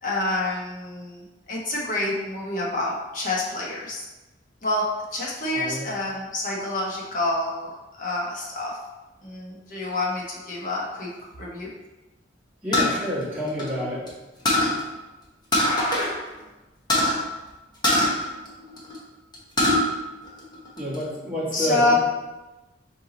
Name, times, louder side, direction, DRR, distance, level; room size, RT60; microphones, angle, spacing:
voice 1, 0.0-4.1 4.6-8.8 9.2-11.1 11.4-11.7 21.5-21.9, left 2 dB, 45° left, -4 dB, 1.1 m, -27 dB
voice 2, 5.5-5.9 12.6-14.0 20.8-22.0, equal, 10° right, -8 dB, 1.4 m, -28 dB
sound 1, 12.7-14.1 14.5-14.8 15.5-16.1 16.4-16.5 16.9-17.2 17.8-19.0 19.3-19.8 20.3-21.0, left 1 dB, 25° left, 0.9 m, -22 dB
4.6 x 2.9 x 3.8 m, 1.1 s
head